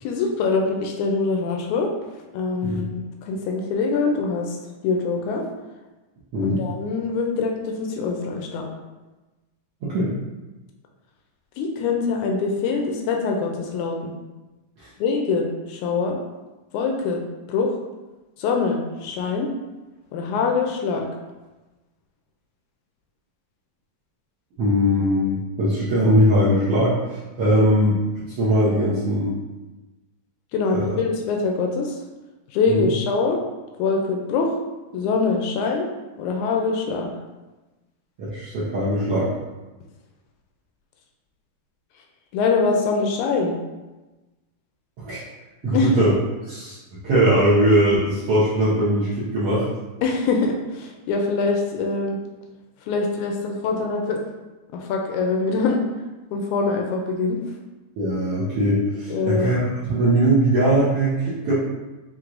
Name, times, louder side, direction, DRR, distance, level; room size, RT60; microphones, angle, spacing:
voice 1, 0.0-1.9 2.3-4.6 4.8-5.4 6.4-8.7 11.6-14.1 15.0-16.2 16.7-17.2 17.5-17.8 18.4-19.5 20.1-21.1 30.5-32.0 32.5-33.4 33.8-34.6 34.9-35.9 36.2-37.1 42.3-43.6 45.7-46.1 50.0-52.2 52.9-54.2 54.7-55.8 56.3-57.4 59.1-59.5, left 4 dB, 80° left, 1 dB, 1.7 m, -23 dB
voice 2, 24.6-28.0 28.4-29.3 30.7-30.9 32.7-32.9 38.2-39.3 45.0-45.2 45.6-46.1 46.5-46.8 47.0-49.6 58.0-61.5, right 1 dB, 75° right, -9 dB, 1.4 m, -20 dB
6.1 x 2.9 x 2.5 m, 1.1 s
omnidirectional pair, 3.8 m